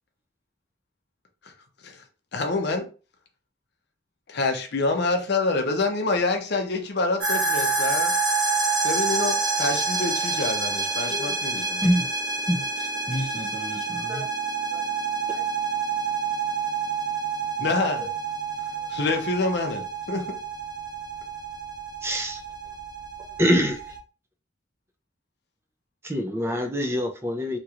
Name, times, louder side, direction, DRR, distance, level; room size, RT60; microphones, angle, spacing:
voice 1, 2.3-2.9 4.3-8.1 8.8-11.8 17.6-18.1 18.9-20.4, left 3 dB, 60° left, 0.6 m, -26 dB
sound 1, 7.2-24.0, right 4 dB, 80° right, 1.1 m, -28 dB
voice 2, 11.6-12.1 12.5-14.3 17.6-17.7, equal, 25° left, 1.4 m, -28 dB
voice 3, 22.0-22.4 23.4-23.9 26.0-27.6, equal, 15° right, 0.5 m, -26 dB
3.0 x 2.9 x 2.4 m
head